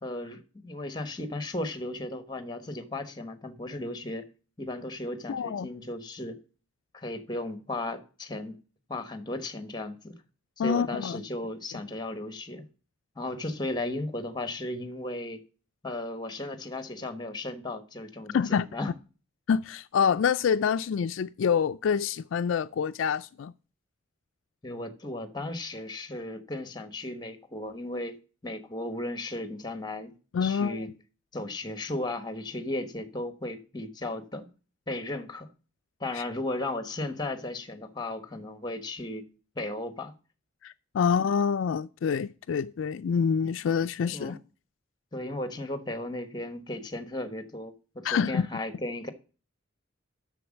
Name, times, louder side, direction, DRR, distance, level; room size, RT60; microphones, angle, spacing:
voice 1, 0.0-4.2 4.6-6.4 6.9-8.6 8.9-10.1 10.6-12.7 13.2-15.4 15.8-18.9 24.6-28.2 28.4-30.1 30.4-30.9 31.3-34.5 34.9-35.5 36.0-39.3 39.5-40.1 44.1-44.4 45.1-49.1, left 2 dB, 20° left, 1.1 m, -35 dB
voice 2, 5.3-5.7 10.6-11.2 18.3-18.7 19.5-23.5 30.3-30.9 36.1-36.2 40.6-44.4 48.0-48.5, left 6 dB, 75° left, 0.3 m, -26 dB
7.8 x 6.5 x 6.2 m
head